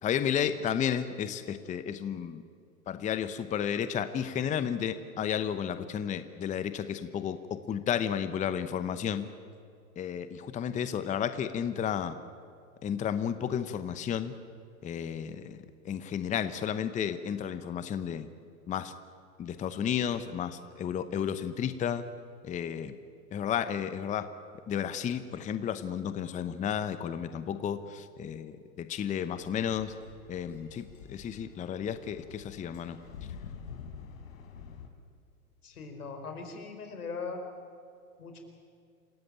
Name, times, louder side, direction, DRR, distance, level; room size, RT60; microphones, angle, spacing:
voice 1, 0.0-2.4 2.9-9.3 10.0-12.2 12.8-14.3 14.8-18.3 18.7-18.9 19.4-22.0 22.4-23.0 23.3-24.3 24.7-29.9 30.3-33.0, left 8 dB, 15° left, 11 dB, 0.8 m, -32 dB
sound 1, 29.4-34.9, left 6 dB, 65° left, 3.5 m, -47 dB
voice 2, 35.6-37.4 38.2-38.4, left 4 dB, 85° left, 5 dB, 4.8 m, -40 dB
27.5 x 16.0 x 8.9 m, 2.4 s
hypercardioid pair, 115°, 44 cm